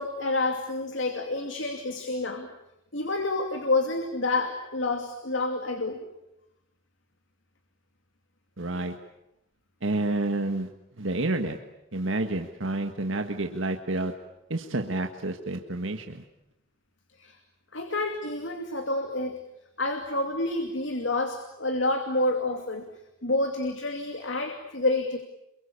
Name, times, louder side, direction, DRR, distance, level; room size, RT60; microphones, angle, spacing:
voice 1, 0.0-2.5 2.9-6.0 17.2-17.4 17.7-19.4 19.8-22.9 23.2-25.2, left 2 dB, 65° left, 5 dB, 2.6 m, -28 dB
voice 2, 8.6-8.9 9.8-10.7 11.0-11.6 11.9-14.1 14.5-16.2, right 2 dB, 75° right, 5 dB, 1.6 m, -29 dB
28.0 x 23.5 x 8.5 m, 0.87 s
head